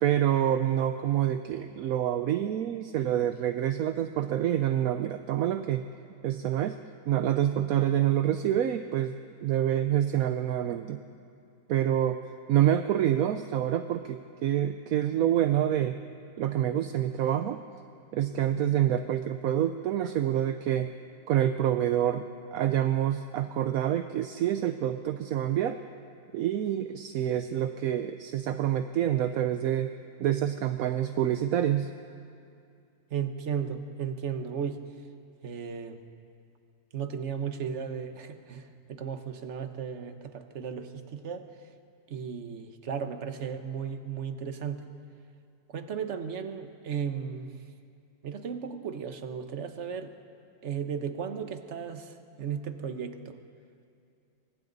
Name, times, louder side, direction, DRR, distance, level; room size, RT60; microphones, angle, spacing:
voice 1, 0.0-5.8 6.2-6.8 7.1-9.1 9.4-11.0 11.7-12.2 12.5-16.0 16.4-17.6 18.1-20.9 21.3-22.2 22.5-25.8 26.3-29.9 30.2-31.9, right 11 dB, 65° right, 9 dB, 0.9 m, -27 dB
voice 2, 33.1-34.8 35.4-36.0 36.9-41.5 42.1-44.9 45.7-47.5 48.2-50.1 50.6-53.4, right 7 dB, 45° right, 8 dB, 1.3 m, -35 dB
27.5 x 24.5 x 4.0 m, 2.5 s
omnidirectional pair, 1.9 m